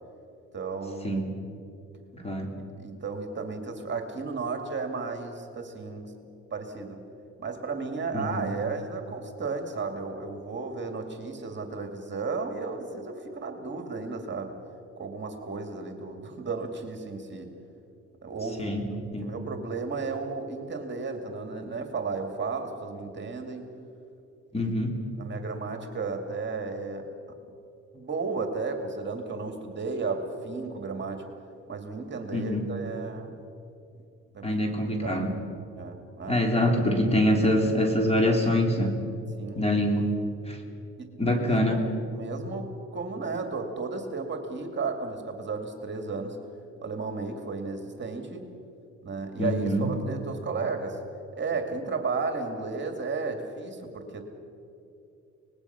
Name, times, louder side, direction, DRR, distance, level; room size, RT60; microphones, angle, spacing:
voice 1, 0.5-1.2 2.8-6.1 6.5-7.0 7.4-14.6 15.0-17.5 18.2-18.9 19.2-23.7 24.5-24.7 25.2-27.1 27.9-31.2 31.7-33.4 34.3-34.6 35.0-35.3 35.8-36.5 39.4-39.6 41.0-41.1 41.4-41.8 42.1-46.4 46.8-48.5 49.0-51.0 51.3-54.2, right 4 dB, 40° right, 5 dB, 2.4 m, -34 dB
voice 2, 2.1-2.5 8.1-8.5 18.6-18.9 19.1-19.3 24.5-25.0 32.3-32.7 34.4-35.3 36.3-38.9 39.6-40.1 40.5-40.6 41.2-41.8 49.4-49.9, left 1 dB, 20° left, 2 dB, 3.5 m, -25 dB
25.0 x 20.0 x 5.9 m, 2.6 s
cardioid pair, 90°, 30 cm